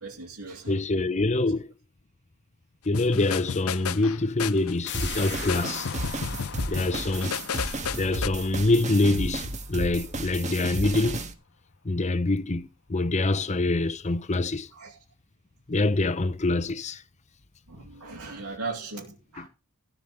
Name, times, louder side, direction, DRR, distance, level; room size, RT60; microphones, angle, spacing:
voice 1, 0.0-0.8 14.8-15.0 17.7-19.5, right 3 dB, 85° right, 2.9 m, -38 dB
voice 2, 0.7-1.7 2.9-5.9 6.7-7.3 8.0-11.2 11.8-14.7 15.7-17.0 19.4-19.5, left 2 dB, 30° left, 0.8 m, -25 dB
sound 1, 2.9-8.3, left 7 dB, 75° left, 0.6 m, -33 dB
sound 2, 4.9-10.3 10.7-10.8, left 8 dB, 55° left, 1.1 m, -41 dB
sound 3, 4.9-11.3, right 2 dB, 35° right, 1.7 m, -33 dB
14.5 x 5.1 x 7.6 m
head